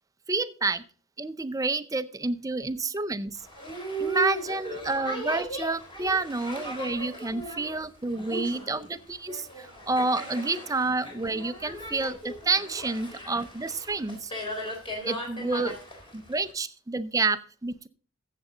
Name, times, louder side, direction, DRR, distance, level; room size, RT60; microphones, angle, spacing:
voice 1, 0.3-0.8 1.2-3.4 4.0-14.3 15.0-15.8 16.1-17.9, right 3 dB, 15° right, 13 dB, 0.5 m, -29 dB
Boat Water vehicle, 3.4-16.5, right 1 dB, 25° left, 3.5 m, -37 dB
14.5 x 7.5 x 3.8 m, 0.42 s
head